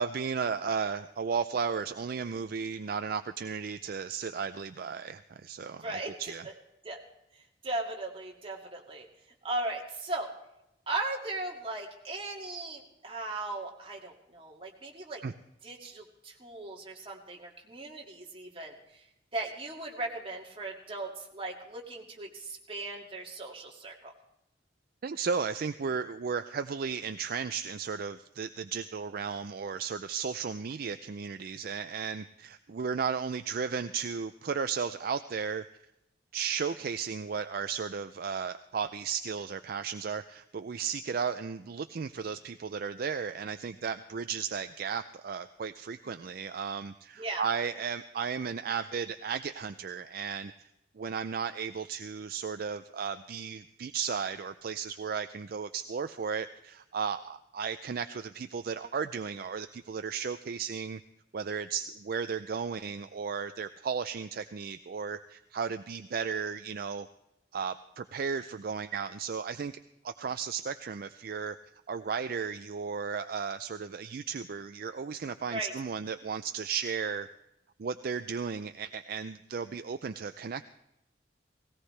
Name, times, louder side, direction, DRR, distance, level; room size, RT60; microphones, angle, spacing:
voice 1, 0.0-6.4 15.2-15.3 25.0-35.6 36.3-50.5 51.0-61.0 61.3-67.1 67.5-69.7 70.0-71.6 71.9-77.3 77.8-80.6, right 6 dB, 55° right, 10 dB, 0.4 m, -34 dB
voice 2, 5.8-6.1 6.4-6.5 6.8-7.0 7.4-9.1 9.4-10.3 10.9-15.2 15.6-19.0 19.3-24.1 47.2-47.4 75.5-75.7, right 2 dB, 30° right, -1 dB, 2.2 m, -37 dB
18.0 x 17.5 x 3.3 m, 0.85 s
head